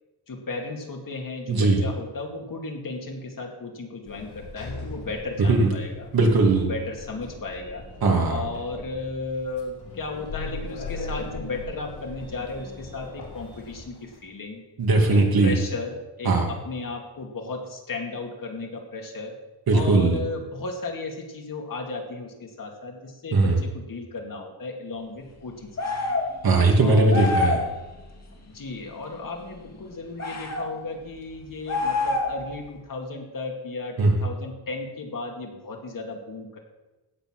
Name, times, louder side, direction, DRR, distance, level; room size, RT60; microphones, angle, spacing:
voice 1, 0.3-6.1 6.5-7.8 8.3-14.6 15.1-19.4 19.7-25.7 26.8-27.8 28.4-36.6, left 3 dB, 55° left, 1 dB, 2.4 m, -35 dB
voice 2, 1.5-1.8 5.5-5.7 6.1-6.7 8.0-8.4 14.8-15.5 16.2-16.5 19.7-20.2 23.3-23.6 26.4-27.6 34.0-34.1, right 3 dB, 65° right, 1 dB, 2.6 m, -19 dB
Sliding door, 4.0-14.2, left 3 dB, 80° left, 4.0 m, -39 dB
sound 1, 25.8-26.3 27.1-27.7 30.2-30.7 31.7-32.4, left 3 dB, 40° left, 2.3 m, -25 dB
16.5 x 6.7 x 6.4 m, 1.1 s
wide cardioid pair, 135°, 39 cm